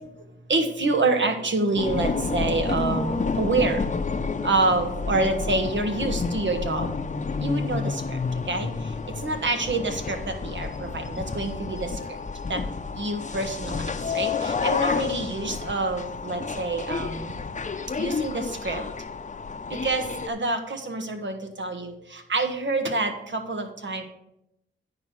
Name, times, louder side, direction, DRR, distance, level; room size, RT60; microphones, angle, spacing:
voice 1, 0.5-3.8 4.4-6.9 7.4-8.2 8.5-8.7 9.2-11.9 12.5-12.6 13.0-13.8 14.1-17.3 18.0-18.8 19.8-24.0, right 3 dB, 65° right, 5 dB, 1.5 m, -27 dB
sound 1, 1.8-20.3, left 4 dB, 35° left, 0.7 m, -30 dB
9.7 x 5.0 x 6.2 m, 0.81 s
cardioid pair, 70°, 20 cm